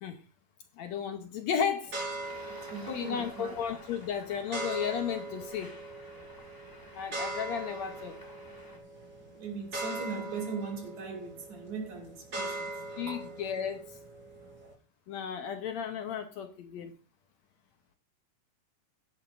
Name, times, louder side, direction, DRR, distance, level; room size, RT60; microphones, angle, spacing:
voice 1, 0.8-2.0 2.9-5.7 6.9-8.2 13.0-13.9 15.1-16.9, left 8 dB, 70° left, 2.0 m, -34 dB
sound 1, 1.9-14.7, right 2 dB, 35° right, 4.1 m, -41 dB
Traffic noise roadway noise, 2.2-8.8, left 1 dB, 10° left, 1.6 m, -51 dB
voice 2, 2.5-3.6 9.3-12.7 13.1-13.3, right 5 dB, 60° right, 4.1 m, -39 dB
16.0 x 10.5 x 2.6 m
omnidirectional pair, 3.6 m